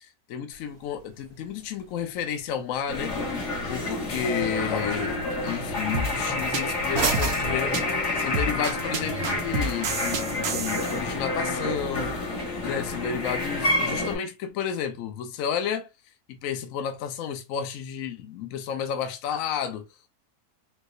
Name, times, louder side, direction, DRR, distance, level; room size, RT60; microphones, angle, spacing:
voice 1, 0.0-3.1 3.7-12.2 12.6-15.9 16.3-19.9, left 8 dB, 65° left, 0.9 m, -32 dB
sound 1, 0.5-8.5, right 4 dB, 50° right, 0.9 m, -37 dB
sound 2, 2.9-14.2, left 2 dB, 85° left, 2.0 m, -29 dB
sound 3, 5.9-11.0, right 3 dB, 75° right, 1.1 m, -30 dB
4.6 x 2.0 x 2.5 m
omnidirectional pair, 1.7 m